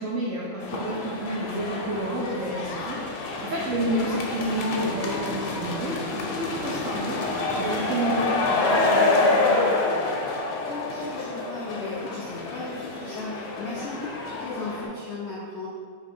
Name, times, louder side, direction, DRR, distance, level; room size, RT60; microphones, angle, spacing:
voice 1, 0.0-9.7, right 1 dB, 80° right, -5 dB, 0.7 m, -30 dB
sound 1, 0.6-14.9, left 3 dB, 70° left, 1.1 m, -27 dB
voice 2, 3.6-4.1 7.7-8.0 10.6-15.7, left 3 dB, 90° left, -6 dB, 0.6 m, -37 dB
4.0 x 2.9 x 4.3 m, 2.1 s
omnidirectional pair, 2.0 m